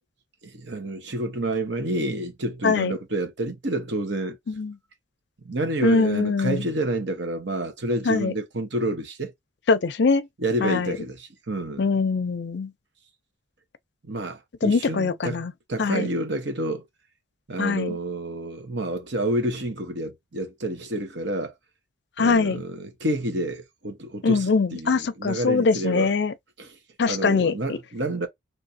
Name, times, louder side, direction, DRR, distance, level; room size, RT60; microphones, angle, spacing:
voice 1, 0.4-4.4 5.4-9.3 10.4-11.9 14.0-15.4 15.7-16.8 17.5-21.5 22.2-26.1 26.6-26.7 27.1-28.3, right 1 dB, 70° right, 1.2 m, -29 dB
voice 2, 5.8-6.7 8.1-8.3 9.7-10.3 10.6-11.0 11.8-12.7 14.6-15.5 15.8-16.1 17.6-18.0 22.2-22.6 24.2-26.3 27.0-27.5, left 4 dB, 60° left, 0.5 m, -22 dB
3.4 x 2.7 x 2.7 m
head